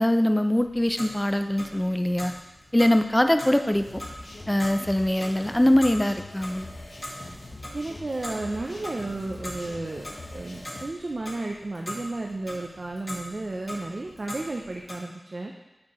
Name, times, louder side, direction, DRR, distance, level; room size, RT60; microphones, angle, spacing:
voice 1, 0.0-2.3 2.7-4.0 4.5-6.7, left 1 dB, 15° left, 8 dB, 0.4 m, -22 dB
Clock, 0.6-14.9, left 1 dB, 40° left, 1.7 m, -42 dB
sound 1, 3.7-10.8, left 2 dB, 75° left, 1.0 m, -43 dB
voice 2, 7.7-10.1 10.3-15.5, right 2 dB, 55° right, 1 dB, 0.5 m, -33 dB
8.5 x 4.4 x 3.0 m, 1.0 s
wide cardioid pair, 55°, 0 cm